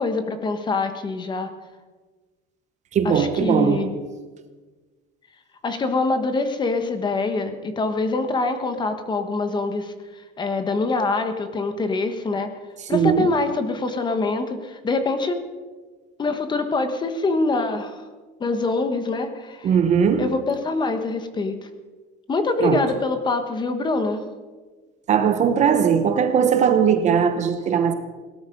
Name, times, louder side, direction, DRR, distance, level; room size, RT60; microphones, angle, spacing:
voice 1, 0.0-1.5 3.0-3.9 5.6-12.5 12.9-15.4 16.2-18.0 18.4-19.7 20.2-21.7 22.3-24.2, left 3 dB, 20° left, 1.2 m, -24 dB
voice 2, 2.9-3.9 12.9-13.3 19.6-20.3 22.6-22.9 25.1-27.9, right 7 dB, 35° right, 0.9 m, -19 dB
17.5 x 12.5 x 5.2 m
cardioid pair, 160°, 21 cm